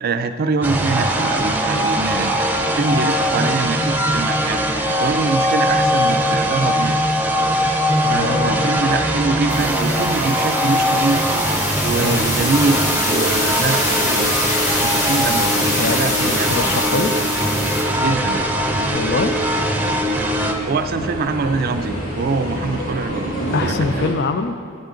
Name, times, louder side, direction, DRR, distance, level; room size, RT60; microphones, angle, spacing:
voice 1, 0.0-4.6 5.0-7.0 8.1-11.3 11.8-14.4 14.8-16.5 18.0-18.4 20.7-24.2, right 4 dB, 50° right, 9 dB, 0.4 m, -24 dB
sound 1, 0.6-20.5, equal, 10° right, 0.7 m, -20 dB
voice 2, 8.0-8.7 12.0-12.2 15.8-16.0 16.2-17.1 18.9-19.4 23.5-24.6, left 4 dB, 55° left, 10 dB, 0.5 m, -23 dB
sound 2, 9.5-17.8, left 2 dB, 35° left, 1.7 m, -24 dB
sound 3, 13.3-24.1, equal, 85° left, 2.0 m, -31 dB
12.5 x 7.9 x 3.8 m, 2.4 s
head